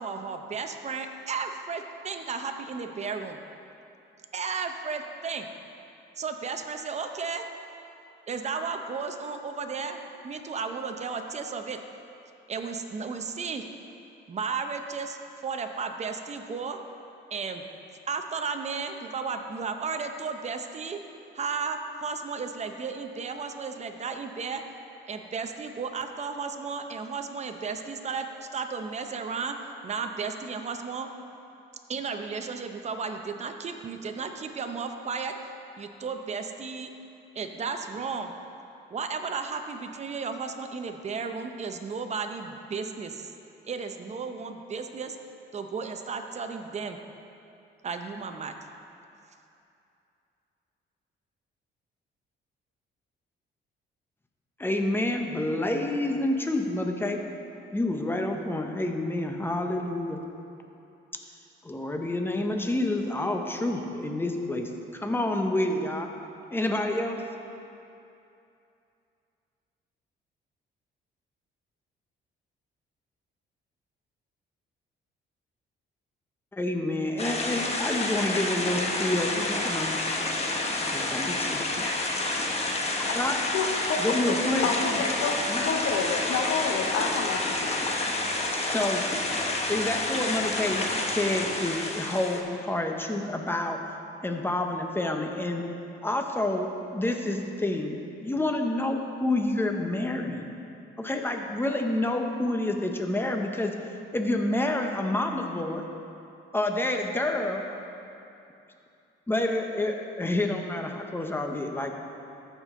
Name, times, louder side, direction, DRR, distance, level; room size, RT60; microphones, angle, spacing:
voice 1, 0.0-3.4 4.3-5.5 6.2-7.4 8.3-11.8 12.5-13.6 14.3-16.8 17.3-17.6 18.1-21.0 21.3-24.6 25.1-29.6 29.8-31.1 31.9-35.3 35.8-36.9 37.3-38.3 38.9-43.3 43.7-45.2 45.5-47.0 47.8-48.5, right 5 dB, 35° right, 6 dB, 0.7 m, -34 dB
voice 2, 54.6-57.2 57.7-60.2 61.6-66.1 66.5-67.2 76.5-79.9 80.8-81.9 83.1-83.4 84.0-85.0 85.5-85.6 88.6-89.0 89.7-93.8 94.2-95.6 96.0-100.5 101.0-103.7 104.1-105.8 106.5-107.7 109.3-111.9, left 1 dB, 10° left, 3 dB, 0.8 m, -28 dB
sound 1, 77.2-92.4, left 2 dB, 30° left, 1.1 m, -29 dB
voice 3, 83.5-84.4 84.6-87.8, left 5 dB, 85° left, 4 dB, 0.8 m, -29 dB
14.0 x 5.2 x 3.7 m, 2.7 s
cardioid pair, 90°, 20 cm